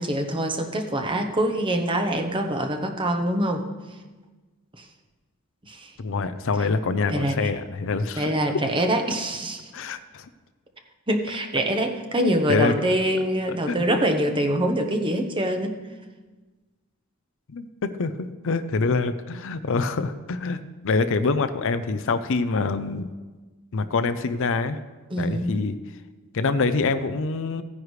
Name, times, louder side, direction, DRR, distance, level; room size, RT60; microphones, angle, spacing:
voice 1, 0.0-3.6 4.8-4.9 5.7-5.9 7.1-7.5 8.2-9.6 11.1-15.7 25.1-25.5, right 1 dB, 25° right, 4 dB, 0.9 m, -24 dB
voice 2, 6.0-8.3 9.7-10.3 12.2-12.7 13.7-14.0 17.5-20.6 20.8-23.1 23.7-24.8 25.2-25.8 26.3-27.6, left 4 dB, 60° left, 11 dB, 0.5 m, -25 dB
15.5 x 9.7 x 3.2 m, 1.3 s
head